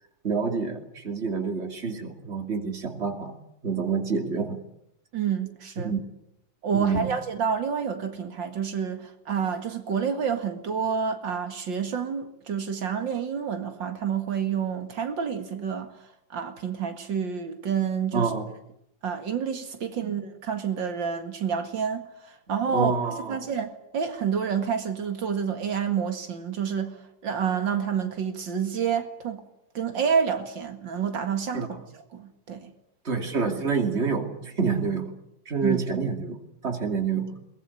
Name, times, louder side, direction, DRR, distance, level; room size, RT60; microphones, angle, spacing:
voice 1, 0.2-3.3 3.6-4.6 5.8-6.0 6.7-7.1 18.1-18.5 20.0-20.2 22.7-23.4 31.5-31.8 33.0-35.1 35.5-36.4 36.6-37.4, right 5 dB, 35° right, 2.9 m, -27 dB
voice 2, 5.1-6.0 6.6-18.3 19.0-22.9 23.3-29.4 29.7-31.7 32.1-32.7 35.6-35.8, right 7 dB, 85° right, 2.7 m, -28 dB
22.5 x 20.0 x 9.8 m
omnidirectional pair, 2.0 m